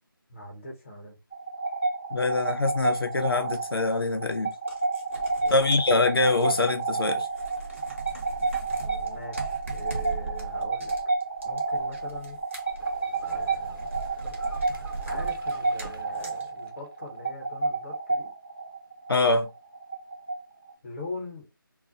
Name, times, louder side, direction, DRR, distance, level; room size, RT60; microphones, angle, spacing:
voice 1, 0.3-1.2 5.4-5.7 8.8-10.9 11.4-12.4 13.3-13.9 15.1-18.3 20.8-21.5, left 2 dB, 35° left, 1.0 m, -42 dB
sound 1, 1.3-20.7, right 3 dB, 10° left, 0.4 m, -30 dB
voice 2, 2.1-4.5 5.5-7.3 19.1-19.5, left 3 dB, 85° left, 0.7 m, -24 dB
sound 2, 3.5-3.6 4.5-6.9 7.2-16.4, right 3 dB, 35° right, 0.7 m, -40 dB
sound 3, 12.8-17.0, right 2 dB, 70° right, 0.9 m, -47 dB
2.4 x 2.1 x 3.8 m
figure-of-eight pair, 170°, 12 cm